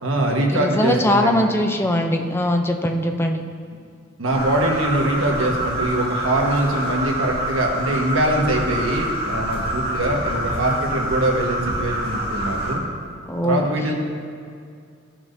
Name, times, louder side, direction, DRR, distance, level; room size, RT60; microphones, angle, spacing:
voice 1, 0.0-1.3 4.2-12.8 13.4-13.9, right 1 dB, 85° right, 0 dB, 1.3 m, -22 dB
voice 2, 0.5-3.4 13.3-13.6, left 1 dB, 10° left, 4 dB, 0.5 m, -21 dB
sound 1, 4.3-12.7, equal, 30° right, 1.6 m, -26 dB
14.5 x 5.9 x 2.6 m, 2.3 s
head